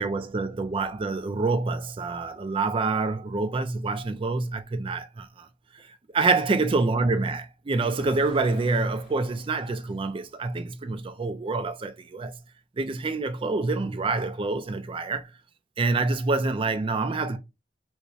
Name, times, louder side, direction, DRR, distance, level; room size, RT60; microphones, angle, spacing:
voice 1, 0.0-5.5 5.8-5.9 6.1-12.4 12.8-15.3 15.8-17.4, right 3 dB, 30° right, 0.4 m, -27 dB
sound 1, 7.7-10.9, left 1 dB, 55° left, 1.6 m, -47 dB
4.6 x 2.1 x 2.7 m
head